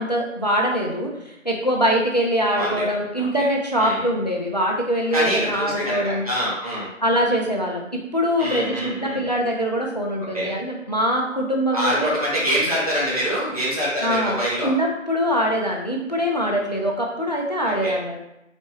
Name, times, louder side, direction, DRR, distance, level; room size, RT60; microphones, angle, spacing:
voice 1, 0.0-6.3 7.0-12.1 14.0-18.2, equal, 35° left, 0 dB, 0.5 m, -23 dB
voice 2, 2.5-2.9 3.2-3.5 3.8-4.1 5.1-6.9 8.4-9.2 10.3-10.5 11.7-14.7 17.6-18.0, equal, 30° right, -8 dB, 1.3 m, -25 dB
4.2 x 3.6 x 3.0 m, 0.86 s
figure-of-eight pair, 165°, 39 cm